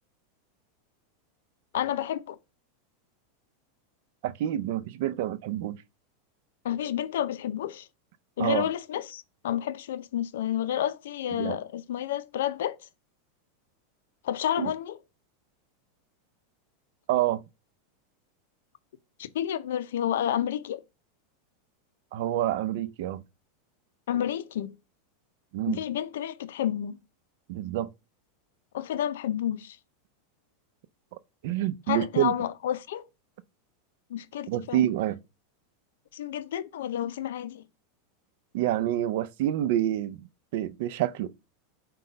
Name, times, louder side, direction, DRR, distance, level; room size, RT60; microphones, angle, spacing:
voice 1, 1.7-2.4 6.6-7.9 8.4-12.8 14.2-15.0 19.2-20.8 24.1-24.7 25.7-27.0 28.7-29.8 31.9-33.0 34.1-34.9 36.1-37.6, left 10 dB, 80° left, 0.4 m, -30 dB
voice 2, 4.2-5.8 8.4-8.7 11.3-11.6 14.6-14.7 17.1-17.4 22.1-23.2 25.5-25.8 27.5-27.9 31.4-32.3 34.5-35.2 38.5-40.3 40.5-41.3, right 13 dB, 65° right, 0.4 m, -27 dB
5.3 x 2.2 x 3.9 m
hypercardioid pair, 115°, 0 cm